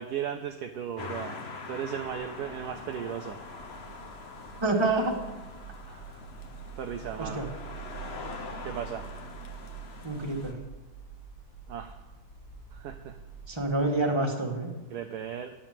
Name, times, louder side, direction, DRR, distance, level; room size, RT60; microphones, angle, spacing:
voice 1, 0.0-3.4 5.9-6.1 6.8-7.4 8.6-9.1 11.7-12.0 12.7-13.2 14.9-15.5, right 9 dB, 70° right, 7 dB, 1.0 m, -36 dB
sound 1, 1.0-10.5, left 4 dB, 40° left, 1.0 m, -43 dB
sound 2, 2.0-13.8, right 8 dB, 80° left, 4.8 m, -46 dB
voice 2, 4.6-5.2 7.2-7.5 10.0-10.6 13.5-14.7, right 2 dB, 15° right, 0 dB, 1.4 m, -27 dB
10.0 x 8.0 x 7.5 m, 1.1 s
omnidirectional pair, 2.2 m